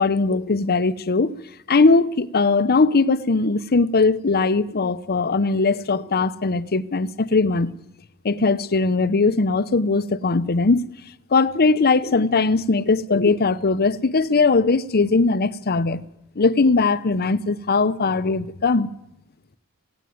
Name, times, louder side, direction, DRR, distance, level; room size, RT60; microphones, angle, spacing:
voice 1, 0.0-1.3 1.7-7.7 8.2-10.9 11.3-16.0 16.4-18.9, left 3 dB, 45° left, 0.8 m, -20 dB
17.0 x 16.5 x 9.5 m
head